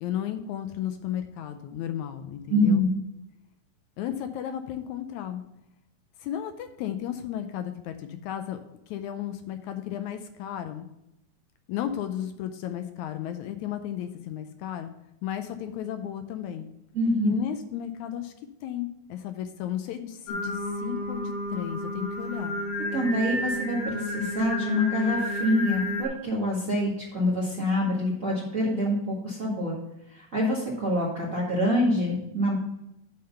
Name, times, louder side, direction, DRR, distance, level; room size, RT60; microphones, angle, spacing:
voice 1, 0.0-2.8 4.0-5.4 6.2-8.6 8.9-10.9 11.7-14.9 15.2-16.7 17.2-18.3 18.6-22.6, left 10 dB, 80° left, 8 dB, 1.9 m, -34 dB
voice 2, 2.5-2.9 16.9-17.3 22.9-29.7 30.1-32.5, left 1 dB, 35° right, -5 dB, 1.5 m, -26 dB
Singing, 20.3-26.1, left 1 dB, 55° left, 1.9 m, -31 dB
8.4 x 3.9 x 6.8 m, 0.84 s
omnidirectional pair, 3.5 m